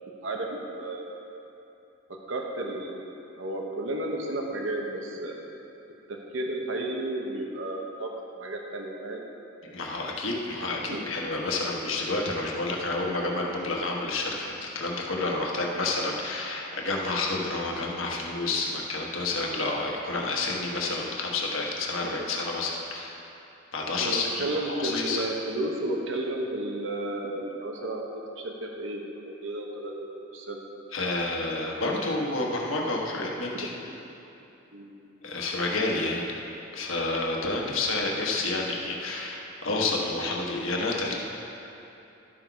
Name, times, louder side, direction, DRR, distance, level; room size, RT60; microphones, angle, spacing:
voice 1, 0.2-1.3 2.3-3.0 3.4-5.4 6.1-9.2 10.9-11.0 24.0-28.1 28.4-30.6 33.5-33.7 34.7-34.9, right 1 dB, 70° right, 1 dB, 1.0 m, -33 dB
voice 2, 9.6-23.2 23.7-25.2 30.9-33.7 35.2-36.2 36.7-41.2, left 2 dB, 80° left, -1 dB, 1.3 m, -29 dB
12.0 x 6.0 x 4.6 m, 2.9 s
head